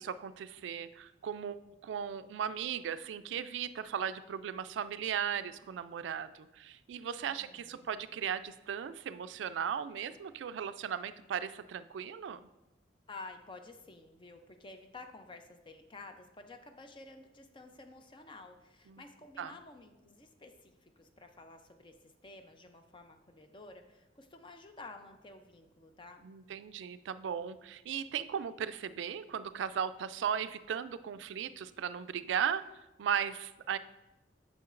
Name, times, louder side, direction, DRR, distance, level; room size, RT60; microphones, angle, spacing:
voice 1, 0.0-1.6 1.8-12.5 18.9-19.0 19.4-19.5 26.2-33.8, right 8 dB, 90° right, 14 dB, 0.3 m, -37 dB
voice 2, 7.2-8.0 13.1-26.2, left 3 dB, 30° left, 6 dB, 0.5 m, -52 dB
8.6 x 6.2 x 2.5 m, 1.0 s
head